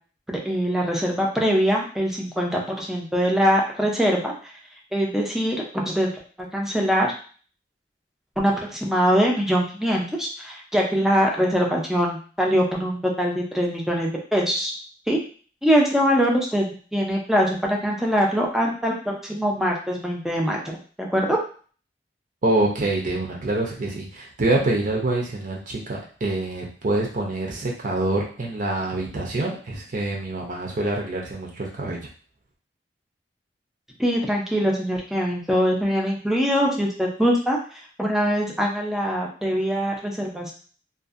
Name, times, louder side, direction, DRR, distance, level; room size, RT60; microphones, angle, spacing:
voice 1, 0.3-4.3 4.9-6.1 6.5-7.1 8.4-14.7 15.1-15.2 15.6-21.4 34.0-37.6 38.0-40.5, equal, ahead, -1 dB, 0.5 m, -23 dB
voice 2, 22.4-32.0, right 2 dB, 50° right, -2 dB, 0.6 m, -26 dB
2.6 x 2.4 x 2.4 m, 0.41 s
head